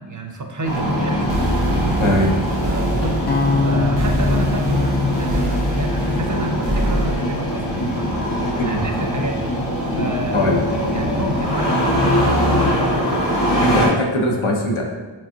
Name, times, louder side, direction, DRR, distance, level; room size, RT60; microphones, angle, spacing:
voice 1, 0.0-2.2 2.5-3.3 3.6-8.1 8.6-9.5 10.0-10.5 10.9-12.7, right 2 dB, 40° right, 3 dB, 0.5 m, -30 dB
Engine starting, 0.6-13.9, equal, 55° left, 1.4 m, -22 dB
sound 1, 1.2-7.2, right 2 dB, 85° right, 0.7 m, -25 dB
voice 2, 2.0-2.3 8.6-8.9 10.3-10.6 13.6-14.8, left 1 dB, 85° left, 0 dB, 0.8 m, -20 dB
sound 2, 3.3-7.4, left 4 dB, 25° left, 0.3 m, -24 dB
4.9 x 3.5 x 2.7 m, 1.2 s
wide cardioid pair, 50°, 47 cm